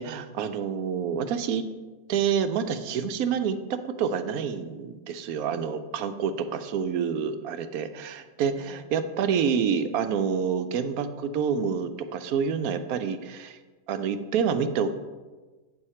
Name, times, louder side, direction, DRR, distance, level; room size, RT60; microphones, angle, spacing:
voice 1, 0.0-1.7 2.1-13.6 13.9-14.9, right 7 dB, 80° right, 10 dB, 1.1 m, -28 dB
8.9 x 6.6 x 4.3 m, 1.3 s
omnidirectional pair, 1.5 m